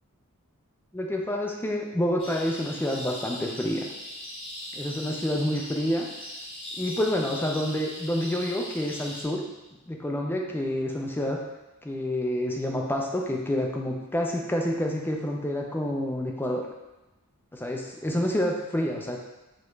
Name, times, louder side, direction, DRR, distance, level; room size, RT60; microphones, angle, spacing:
voice 1, 0.9-3.8 4.7-6.1 6.8-9.4 9.9-11.4 11.8-16.7 17.5-19.2, left 1 dB, 10° left, 0 dB, 0.4 m, -28 dB
sound 1, 2.2-9.2, equal, 25° left, 1.0 m, -39 dB
5.0 x 2.4 x 3.1 m, 1.0 s
head